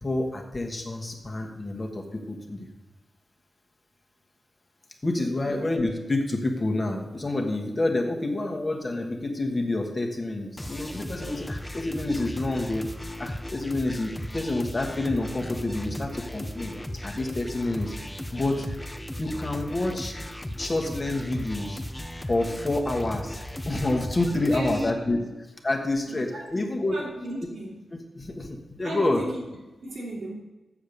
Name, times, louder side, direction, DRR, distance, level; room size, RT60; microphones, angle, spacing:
voice 1, 0.0-2.7 5.0-16.7 17.0-18.7 19.2-20.1 20.6-21.8 22.3-23.4 23.6-25.2 25.6-27.0 28.1-29.2, left 2 dB, 30° left, 2 dB, 1.3 m, -28 dB
sound 1, 10.6-24.9, left 1 dB, 10° left, 0.7 m, -36 dB
voice 2, 24.3-24.9 26.1-26.5 26.9-27.8 28.8-29.4 29.8-30.3, right 1 dB, 85° right, -4 dB, 2.9 m, -35 dB
7.3 x 6.8 x 6.7 m, 1.1 s
wide cardioid pair, 110°, 0 cm